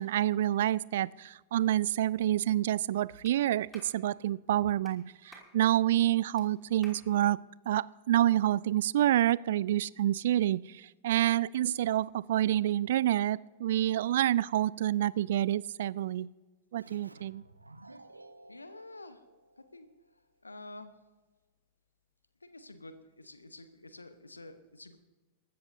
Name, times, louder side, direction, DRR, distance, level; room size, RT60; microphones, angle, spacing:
voice 1, 0.0-7.4 7.7-16.3 16.7-17.4, right 13 dB, 60° right, 22 dB, 0.3 m, -28 dB
Clapping, 3.2-3.4 3.7-3.9 4.8-5.0 5.3-5.5 6.4-6.5 6.8-7.0, left 1 dB, 5° left, 2.9 m, -52 dB
Keyboard (musical), 16.8-20.2, right 2 dB, 85° right, 0.8 m, -54 dB
voice 2, 18.5-19.2 19.6-19.9 20.4-20.9 22.4-25.0, left 2 dB, 80° left, 11 dB, 1.1 m, -49 dB
23.5 x 13.0 x 2.8 m, 1.2 s
figure-of-eight pair, 90°, 0 cm